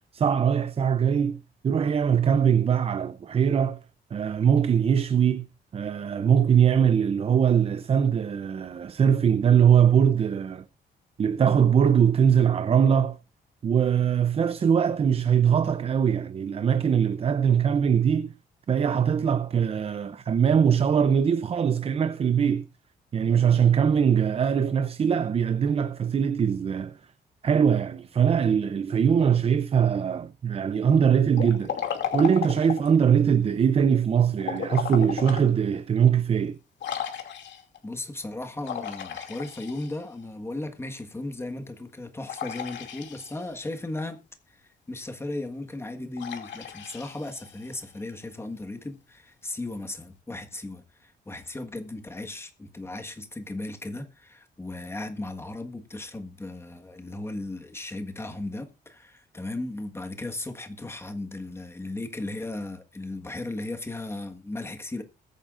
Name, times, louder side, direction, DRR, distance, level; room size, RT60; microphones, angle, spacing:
voice 1, 0.1-3.8 4.1-5.5 5.7-10.6 11.2-13.2 13.6-18.3 18.7-22.7 23.1-27.0 27.4-31.7 32.1-36.6, right 7 dB, 35° right, 0.5 m, -22 dB
Liquid, 31.3-33.0 34.4-35.5 36.0-36.1 36.8-37.8 38.6-40.2 42.3-43.6 46.2-47.8, left 9 dB, 85° left, 2.5 m, -34 dB
voice 2, 37.8-44.2 44.6-65.0, left 2 dB, 15° left, 1.5 m, -36 dB
21.5 x 9.0 x 2.5 m
cardioid pair, 155°, 18 cm